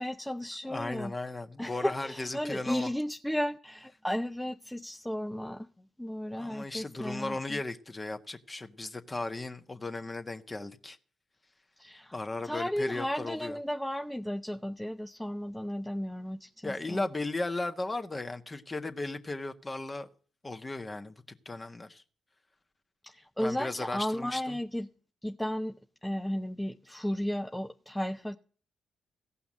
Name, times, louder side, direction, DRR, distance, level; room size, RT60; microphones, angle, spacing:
voice 1, 0.0-1.1 1.6-5.7 6.0-7.6 11.8-12.2 12.4-17.1 23.0-24.9 25.2-28.4, equal, 5° left, 0.7 m, -34 dB
voice 2, 0.7-2.9 5.8-5.9 6.3-11.0 12.1-13.6 16.6-20.1 20.4-22.0 23.4-24.6, left 2 dB, 25° left, 1.5 m, -36 dB
16.0 x 5.8 x 8.7 m
hypercardioid pair, 45°, 0 cm